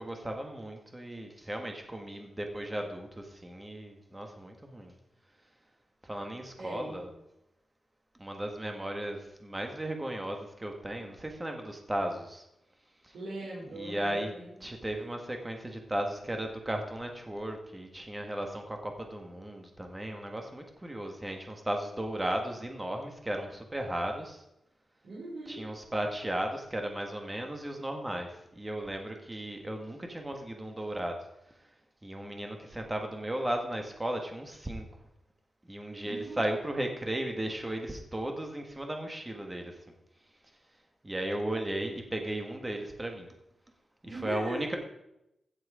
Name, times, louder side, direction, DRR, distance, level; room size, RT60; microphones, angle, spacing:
voice 1, 0.0-4.9 6.0-7.1 8.2-12.4 13.0-13.1 13.7-14.3 14.6-24.4 25.5-31.2 32.0-34.8 35.7-39.7 41.0-43.3 44.1-44.8, right 1 dB, 15° right, 3 dB, 1.5 m, -35 dB
voice 2, 6.6-7.0 13.1-14.9 25.0-25.6 36.0-36.4 44.0-44.7, right 1 dB, 80° right, -10 dB, 5.0 m, -40 dB
15.5 x 6.2 x 4.9 m, 0.84 s
wide cardioid pair, 150°, 0 cm